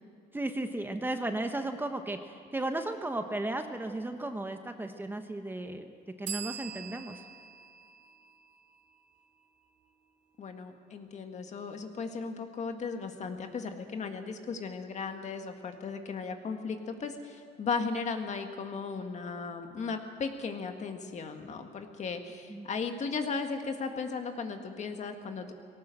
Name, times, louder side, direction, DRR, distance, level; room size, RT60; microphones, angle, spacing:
voice 1, 0.3-5.9 6.2-7.2 22.5-22.7, right 2 dB, 10° right, 6 dB, 1.1 m, -35 dB
sound 1, 6.3-9.8, right 7 dB, 50° right, 2.5 m, -44 dB
voice 2, 10.4-25.5, left 5 dB, 45° left, 5 dB, 1.9 m, -36 dB
19.0 x 17.5 x 7.8 m, 2.4 s
cardioid pair, 110°, 17 cm